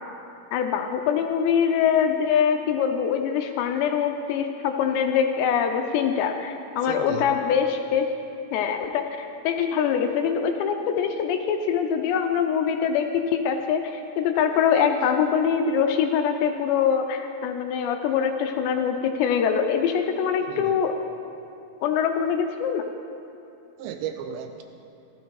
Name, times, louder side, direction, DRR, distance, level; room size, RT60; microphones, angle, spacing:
voice 1, 0.5-8.1 8.5-21.0 21.8-22.8, left 7 dB, 80° left, 6 dB, 2.7 m, -23 dB
voice 2, 6.8-7.3 20.5-20.7 23.8-24.6, right 9 dB, 80° right, 6 dB, 2.7 m, -34 dB
14.5 x 14.0 x 4.7 m, 2.8 s
omnidirectional pair, 5.4 m